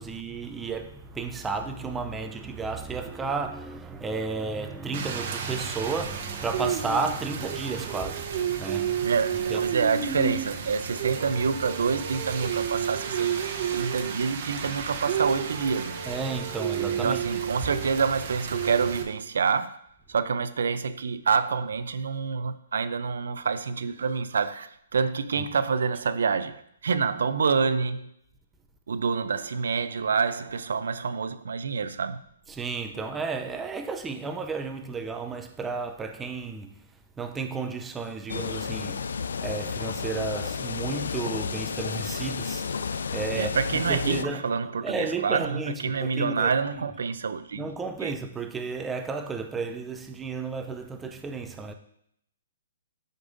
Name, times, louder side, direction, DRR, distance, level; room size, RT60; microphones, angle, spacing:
voice 1, 0.0-9.6 13.8-13.9 16.1-17.2 32.5-36.9 37.2-43.5 43.9-44.5 44.8-46.9 47.5-51.7, right 4 dB, 10° right, 0.5 m, -33 dB
Rain, 4.9-19.0, right 8 dB, 45° right, 0.9 m, -31 dB
voice 2, 9.0-13.3 13.7-16.0 17.0-19.8 20.1-28.1 28.9-32.2 43.4-47.7 48.0-48.1, right 5 dB, 80° right, 0.5 m, -27 dB
sound 1, 38.3-44.2, left 5 dB, 80° left, 0.3 m, -32 dB
10.5 x 5.3 x 2.6 m
hypercardioid pair, 160°, 0 cm